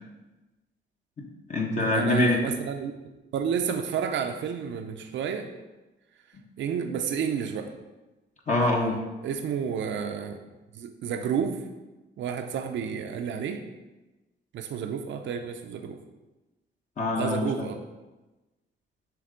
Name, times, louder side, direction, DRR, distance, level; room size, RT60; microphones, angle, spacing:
voice 1, 1.2-2.4 8.5-8.9 17.0-17.7, left 2 dB, 40° left, -1 dB, 1.0 m, -25 dB
voice 2, 1.9-2.9 3.3-5.5 6.6-7.7 9.2-10.4 10.7-11.6 12.2-13.6 14.5-16.0 17.2-17.8, right 7 dB, 80° right, 6 dB, 0.6 m, -30 dB
7.8 x 3.3 x 5.1 m, 1.1 s
cardioid pair, 115°, 19 cm